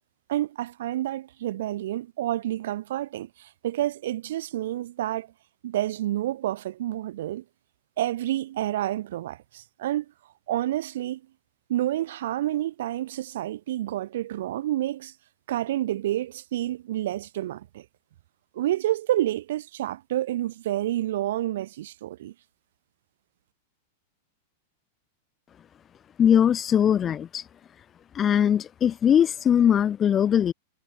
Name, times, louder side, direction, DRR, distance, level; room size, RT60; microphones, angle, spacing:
voice 1, 0.3-5.3 5.6-7.4 8.0-10.0 10.5-11.2 11.7-15.1 15.5-17.8 18.5-22.3, right 13 dB, 65° right, 3.4 m, -29 dB
voice 2, 26.2-27.4 28.1-30.5, left 9 dB, 15° left, 0.7 m, -21 dB
supercardioid pair, 170°, 0 cm